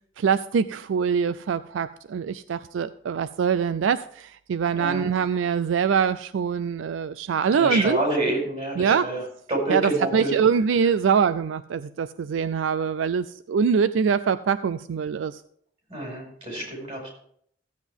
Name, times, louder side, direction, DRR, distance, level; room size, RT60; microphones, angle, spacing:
voice 1, 0.2-8.0 8.8-9.1 9.7-15.4, right 6 dB, 80° right, 14 dB, 0.3 m, -24 dB
voice 2, 4.7-5.0 7.5-9.2 9.5-10.3 15.9-17.1, right 1 dB, 30° right, -1 dB, 5.1 m, -27 dB
15.0 x 8.1 x 3.6 m, 0.65 s
head